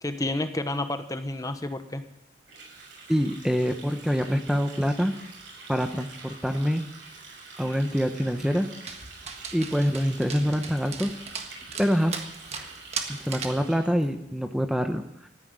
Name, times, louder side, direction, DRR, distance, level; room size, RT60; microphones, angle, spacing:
voice 1, 0.0-2.0, left 2 dB, 20° left, 9 dB, 0.9 m, -30 dB
Water tap faucet, 2.4-14.0, right 3 dB, 75° right, 6.9 m, -46 dB
voice 2, 3.1-5.1 5.7-6.8 7.6-8.7 9.5-11.1 11.8-12.1 13.2-15.3, equal, ahead, 6 dB, 0.8 m, -25 dB
Dog, 8.9-13.7, right 5 dB, 35° right, 1.6 m, -38 dB
14.0 x 9.9 x 9.1 m, 0.82 s
head